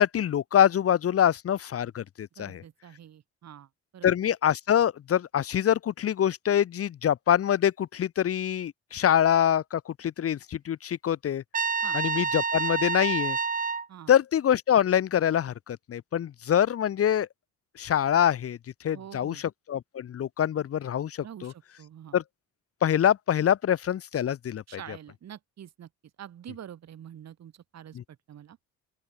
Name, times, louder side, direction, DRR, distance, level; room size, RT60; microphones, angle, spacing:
voice 1, 0.0-2.6 4.0-11.4 11.9-13.4 14.1-17.3 17.8-18.6 18.8-19.4 19.7-21.5 22.1-22.2 22.8-24.8 27.9-28.0, left 9 dB, 50° left, 0.9 m, -25 dB
voice 2, 2.4-4.1 11.8-12.0 13.9-14.1 18.9-19.4 21.2-22.2 24.7-25.9 26.2-28.6, right 10 dB, 60° right, 2.5 m, -46 dB
Trumpet, 11.5-13.9, right 5 dB, 30° right, 1.3 m, -28 dB
open air
cardioid pair, 90°, 30 cm